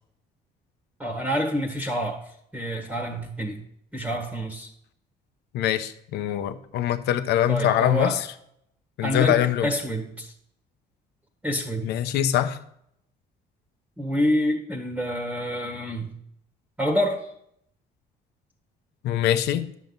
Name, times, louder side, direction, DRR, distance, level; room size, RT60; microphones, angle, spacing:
voice 1, 1.0-2.2 2.5-3.6 3.9-4.7 7.5-8.2 9.0-10.3 11.4-11.9 14.0-16.1 16.8-17.3, equal, 10° right, 1.5 m, -27 dB
voice 2, 5.5-8.3 9.0-9.7 11.8-12.6 19.0-19.7, left 11 dB, 80° left, 0.8 m, -23 dB
10.5 x 7.3 x 3.9 m
cardioid pair, 110°, 17 cm